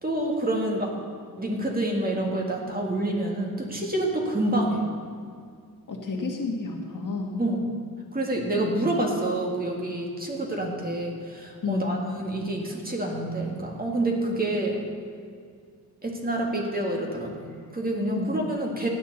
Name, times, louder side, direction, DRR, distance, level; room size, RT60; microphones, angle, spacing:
voice 1, 0.0-0.9 1.4-4.8 7.4-7.7 8.1-14.8 16.0-18.9, right 1 dB, 25° right, 0 dB, 2.0 m, -27 dB
voice 2, 5.9-7.4 11.6-12.0 18.1-18.4, left 3 dB, 55° left, 1 dB, 1.7 m, -31 dB
16.5 x 9.8 x 4.1 m, 2.1 s
wide cardioid pair, 105°, 37 cm